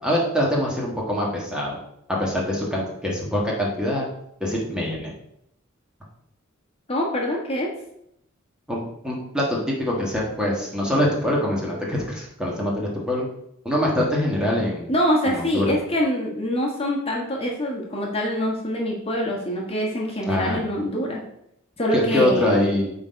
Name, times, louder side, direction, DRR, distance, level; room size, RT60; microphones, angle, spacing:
voice 1, 0.0-1.8 2.1-4.1 4.4-5.1 8.7-13.2 13.6-14.9 15.2-15.8 20.3-20.6 21.9-22.9, left 1 dB, 5° right, -3 dB, 1.5 m, -24 dB
voice 2, 6.9-7.7 14.9-21.2 21.8-22.7, equal, 30° left, -2 dB, 1.5 m, -25 dB
8.6 x 4.0 x 5.2 m, 0.77 s
head